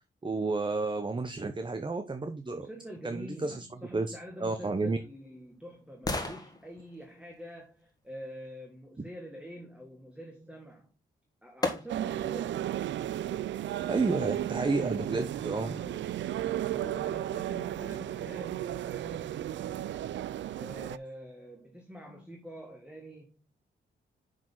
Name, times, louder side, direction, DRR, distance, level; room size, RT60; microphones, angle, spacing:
voice 1, 0.2-2.7 3.0-3.7 3.9-5.0 9.0-9.1 13.9-16.0, right 3 dB, 25° right, 0.9 m, -31 dB
voice 2, 2.5-10.9 11.4-12.7 16.7-19.9 20.6-23.5, equal, 5° right, 1.8 m, -46 dB
sound 1, 4.7-8.6 10.7-10.8 11.6-12.3 12.8-12.9, left 2 dB, 20° left, 1.7 m, -39 dB
sound 2, 11.9-21.0, right 12 dB, 70° right, 0.4 m, -34 dB
6.3 x 6.1 x 3.9 m
cardioid pair, 60°, 20 cm